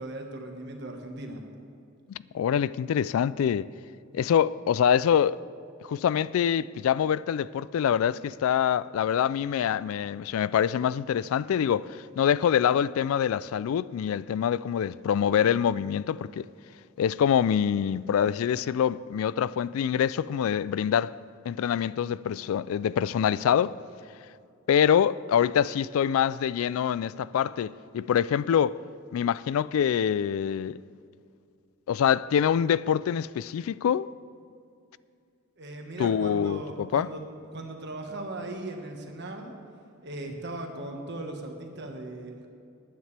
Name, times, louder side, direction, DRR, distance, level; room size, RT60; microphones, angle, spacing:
voice 1, 0.0-1.4 35.6-37.2 37.5-39.5 40.0-42.5, right 2 dB, 55° right, 1.5 m, -38 dB
voice 2, 2.1-3.7 4.1-5.4 5.9-11.9 12.2-16.5 17.0-21.1 21.5-23.8 24.7-28.8 29.1-30.8 31.9-34.1 36.0-37.1, left 8 dB, 85° left, 0.3 m, -25 dB
19.5 x 9.5 x 3.3 m
head